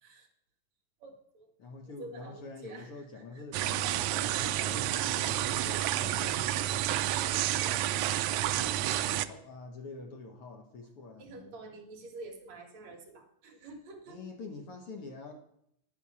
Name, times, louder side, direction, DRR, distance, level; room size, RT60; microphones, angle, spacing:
voice 1, 1.0-1.5 2.0-3.4 11.2-14.2, right 2 dB, 65° right, 1 dB, 2.9 m, -48 dB
voice 2, 1.6-6.6 8.5-11.5 14.1-15.3, left 3 dB, 60° left, 3 dB, 1.8 m, -46 dB
sound 1, 3.5-9.3, right 13 dB, 80° right, 1.9 m, -30 dB
10.5 x 8.7 x 6.1 m, 0.73 s
omnidirectional pair, 3.4 m